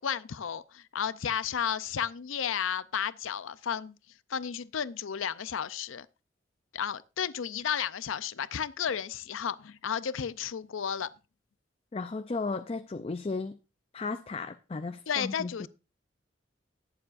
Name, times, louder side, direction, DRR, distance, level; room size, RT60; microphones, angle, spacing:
voice 1, 0.0-4.0 4.3-6.1 6.7-11.1 15.1-15.7, left 8 dB, 90° left, 0.5 m, -33 dB
voice 2, 11.9-13.6 13.9-15.7, left 3 dB, 30° left, 0.4 m, -35 dB
19.0 x 7.2 x 2.5 m
head